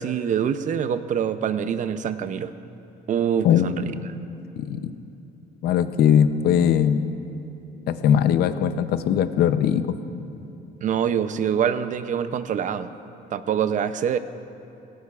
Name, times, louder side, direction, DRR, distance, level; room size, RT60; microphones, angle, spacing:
voice 1, 0.0-2.5 3.1-3.9 10.8-12.9 13.3-14.2, right 8 dB, 50° right, 11 dB, 0.6 m, -25 dB
voice 2, 3.4-4.0 4.6-4.9 5.6-7.1 7.9-10.0, left 9 dB, 70° left, 11 dB, 0.7 m, -20 dB
18.0 x 17.5 x 2.4 m, 2.9 s
cardioid pair, 110°, 17 cm